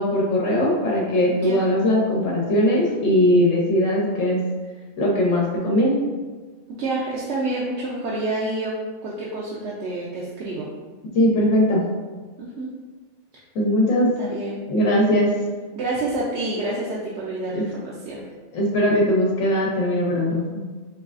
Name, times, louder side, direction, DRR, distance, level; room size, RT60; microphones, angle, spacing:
voice 1, 0.0-4.4 5.0-6.0 11.1-11.8 13.5-14.1 14.7-15.3 17.5-17.6 18.5-20.4, left 1 dB, 80° left, -2 dB, 1.1 m, -20 dB
voice 2, 6.8-8.8 9.0-10.7 12.4-12.7 14.2-14.6 15.7-18.2, right 2 dB, 65° right, -5 dB, 0.8 m, -28 dB
4.6 x 3.1 x 2.4 m, 1.4 s
omnidirectional pair, 1.3 m